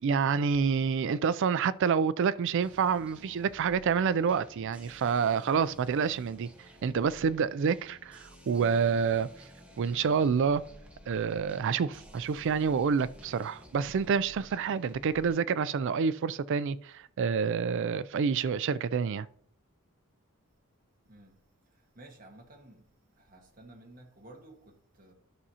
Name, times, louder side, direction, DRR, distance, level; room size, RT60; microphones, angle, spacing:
voice 1, 0.0-6.5 6.8-9.3 9.8-10.6 11.1-19.3, right 6 dB, 55° right, 0.3 m, -28 dB
sound 1, 2.6-15.3, equal, 5° right, 1.0 m, -53 dB
voice 2, 21.7-22.9 23.1-25.1, right 1 dB, 40° right, 1.5 m, -53 dB
12.5 x 6.1 x 2.8 m
head